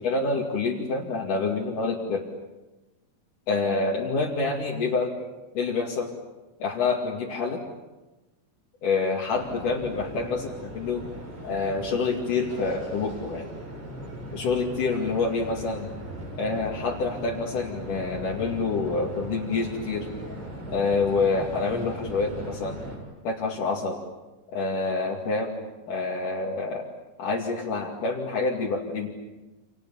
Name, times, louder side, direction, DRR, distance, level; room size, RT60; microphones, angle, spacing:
voice 1, 0.0-2.3 3.5-5.1 5.6-6.1 6.6-7.6 8.8-10.5 10.7-11.1 11.4-13.5 14.3-15.9 16.4-20.1 20.7-22.8 23.2-24.0 24.5-26.9 27.2-29.1, left 4 dB, 65° left, -3 dB, 3.9 m, -27 dB
sound 1, 9.3-23.0, right 1 dB, 65° right, 8.5 m, -39 dB
30.0 x 27.5 x 7.2 m, 1.1 s
omnidirectional pair, 4.2 m